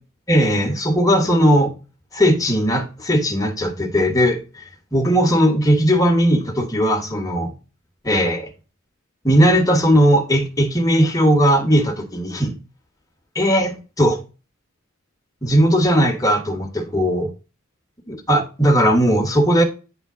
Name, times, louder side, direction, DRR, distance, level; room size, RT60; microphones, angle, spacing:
voice 1, 0.3-1.7 2.1-4.6 4.9-7.5 8.0-8.5 9.2-12.5 13.3-14.2 15.4-17.3 18.1-19.6, equal, 15° left, 1.2 m, -17 dB
9.5 x 3.7 x 3.6 m
head